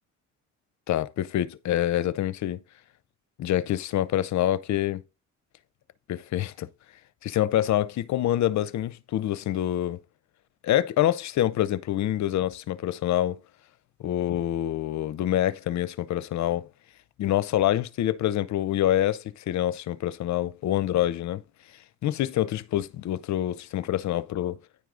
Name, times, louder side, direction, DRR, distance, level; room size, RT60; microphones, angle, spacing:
voice 1, 0.9-2.6 3.4-5.0 6.1-6.7 7.2-10.0 10.6-13.4 14.0-16.7 17.2-21.4 22.0-24.6, left 12 dB, 65° left, 0.7 m, -26 dB
9.9 x 4.6 x 3.8 m
cardioid pair, 90°, 30 cm